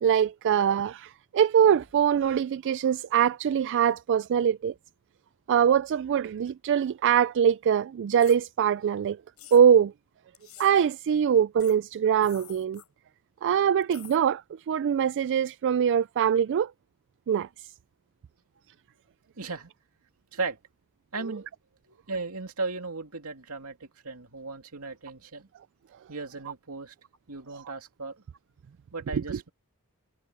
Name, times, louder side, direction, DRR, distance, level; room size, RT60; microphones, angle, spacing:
voice 1, 0.0-4.7 5.5-9.2 9.5-9.9 10.6-12.8 13.4-14.4 14.7-16.7 17.3-17.5 29.1-29.4, right 8 dB, 55° right, 0.3 m, -23 dB
sound 1, 8.2-8.4 9.4-9.6 10.3-10.7 11.6-11.8 12.2-12.9 13.8-14.2, left 13 dB, 80° left, 7.8 m, -48 dB
voice 2, 19.4-19.7 20.3-20.6 21.1-21.5 21.9-25.5 26.1-26.9 27.3-28.2 28.9-29.5, right 3 dB, 75° right, 2.5 m, -36 dB
head